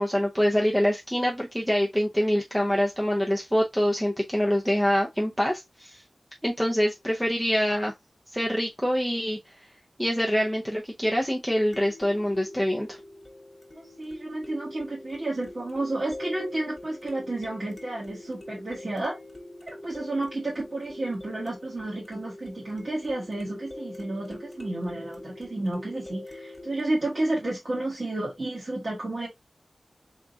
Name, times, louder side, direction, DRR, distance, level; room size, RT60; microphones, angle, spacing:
voice 1, 0.0-6.0 6.4-7.9 8.3-9.4 10.0-13.0, equal, ahead, 0.7 m, -25 dB
sound 1, 7.0-7.1 11.7-26.8, left 1 dB, 25° left, 1.0 m, -44 dB
voice 2, 13.7-19.2 19.7-29.3, right 2 dB, 45° right, 1.4 m, -31 dB
3.6 x 3.6 x 2.7 m
wide cardioid pair, 85°, 0 cm